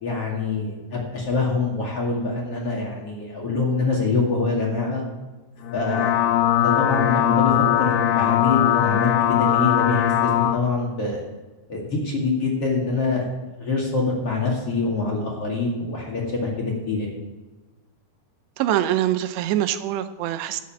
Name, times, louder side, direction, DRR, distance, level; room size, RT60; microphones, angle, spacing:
voice 1, 0.0-5.0 5.7-6.1 6.6-11.2 11.7-17.1, left 3 dB, 40° left, -2 dB, 2.7 m, -25 dB
sound 1, 5.6-10.6, left 11 dB, 75° left, 2.5 m, -20 dB
voice 2, 18.6-20.6, right 12 dB, 80° right, 10 dB, 2.8 m, -24 dB
12.5 x 7.6 x 7.4 m, 1.2 s
omnidirectional pair, 5.0 m